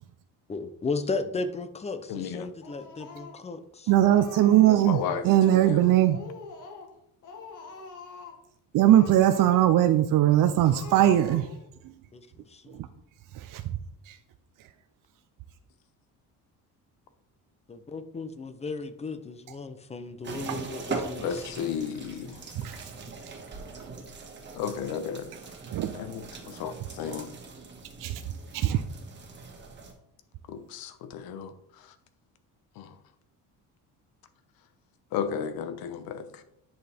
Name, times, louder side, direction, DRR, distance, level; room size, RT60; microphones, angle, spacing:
voice 1, 0.5-3.9 12.1-12.8 17.7-21.7, left 3 dB, 20° left, 0.7 m, -35 dB
voice 2, 2.1-2.5 4.7-5.8 21.2-22.4 24.5-25.3 25.9-27.4 30.5-31.9 32.8-33.0 35.1-36.4, left 7 dB, 85° left, 1.0 m, -34 dB
Speech, 2.6-3.5 3.9-5.0 5.3-5.8 6.1-7.0 7.2-8.4 8.8-9.9 10.2-10.4 10.7-11.7, left 3 dB, 60° left, 1.9 m, -44 dB
voice 3, 3.9-6.2 8.7-11.5 11.8-11.9 12.7-12.9 13.3-13.8 14.1-14.2 22.6-23.1 23.8-23.9 25.7-25.9 28.0-28.2 28.5-28.8, right 12 dB, 65° right, 0.6 m, -21 dB
sound 1, 20.2-29.9, right 4 dB, 30° right, 1.8 m, -41 dB
10.0 x 6.1 x 3.5 m
cardioid pair, 130°, 35 cm